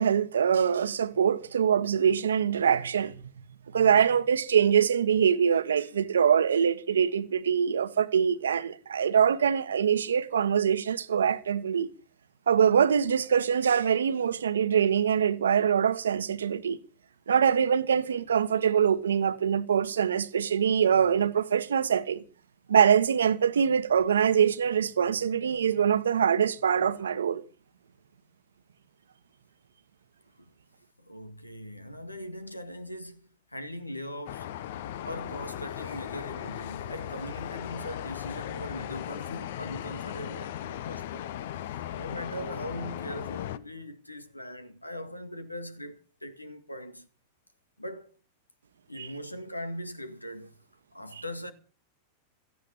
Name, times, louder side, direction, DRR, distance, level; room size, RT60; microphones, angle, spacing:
voice 1, 0.0-3.2 3.7-11.9 12.5-16.8 17.3-22.2 22.7-27.4 49.0-49.1, right 8 dB, 70° right, 1.2 m, -24 dB
voice 2, 31.0-34.6 35.0-41.3 42.0-47.1 47.8-48.1 48.9-50.6 50.9-51.5, equal, 85° left, 1.9 m, -40 dB
sound 1, 34.3-43.6, left 11 dB, 55° left, 0.9 m, -37 dB
17.0 x 14.5 x 5.6 m
figure-of-eight pair, 90°, 0 cm